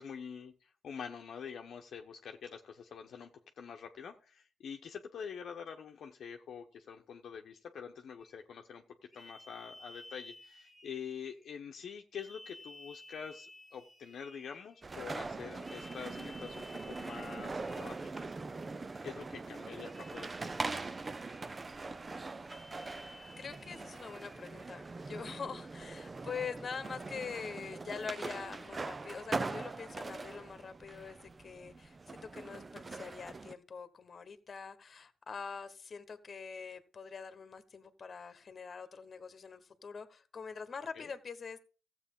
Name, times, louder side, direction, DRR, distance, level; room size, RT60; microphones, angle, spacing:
voice 1, 0.0-18.4 19.0-20.7 40.9-41.1, left 7 dB, 60° left, 3 dB, 1.0 m, -46 dB
sound 1, 8.2-8.4 9.1-11.5 12.1-14.9 15.6-18.4 19.8-21.7 22.4-24.5, left 1 dB, 10° left, 1.8 m, -55 dB
skater at southbank, 14.8-33.5, right 3 dB, 25° right, 0.6 m, -42 dB
voice 2, 23.4-41.6, left 5 dB, 40° left, 11 dB, 1.3 m, -44 dB
14.5 x 7.9 x 3.7 m, 0.36 s
cardioid pair, 90°, 0 cm